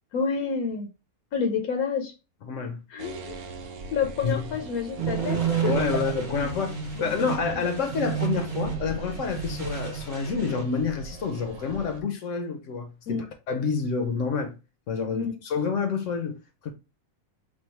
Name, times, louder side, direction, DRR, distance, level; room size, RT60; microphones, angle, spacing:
voice 1, 0.1-0.9 1.3-2.1 2.9-3.3 3.9-5.7 6.3-6.4 7.0-7.6 13.1-13.2 15.1-15.3, left 6 dB, 80° left, 1.2 m, -29 dB
voice 2, 2.5-2.8 4.2-4.3 5.7-14.6 14.9-16.4 16.6-16.7, left 5 dB, 65° left, 0.9 m, -28 dB
sound 1, 3.0-12.0, right 3 dB, 85° right, 1.1 m, -41 dB
sound 2, 5.0-10.7, right 8 dB, 35° right, 1.0 m, -31 dB
3.4 x 2.3 x 4.4 m
omnidirectional pair, 1.5 m